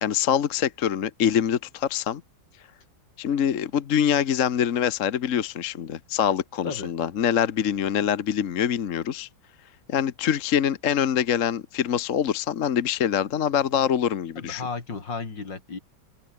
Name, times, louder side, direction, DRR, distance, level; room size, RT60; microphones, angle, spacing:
voice 1, 0.0-2.2 3.2-9.3 9.9-14.7, left 9 dB, 50° left, 1.2 m, -24 dB
voice 2, 14.4-15.8, left 4 dB, 70° left, 4.1 m, -34 dB
open air
omnidirectional pair, 2.0 m